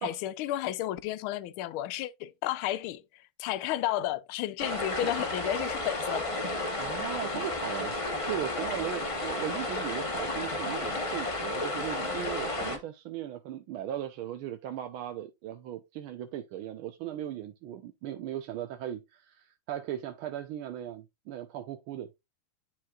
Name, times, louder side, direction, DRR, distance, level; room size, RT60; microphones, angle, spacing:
voice 1, 0.0-3.0 3.4-6.4, left 13 dB, 80° left, 1.4 m, -32 dB
sound 1, 4.6-12.8, left 2 dB, 25° left, 0.7 m, -32 dB
voice 2, 6.8-7.9 8.3-22.1, right 11 dB, 80° right, 1.5 m, -38 dB
10.0 x 4.6 x 2.4 m
omnidirectional pair, 2.4 m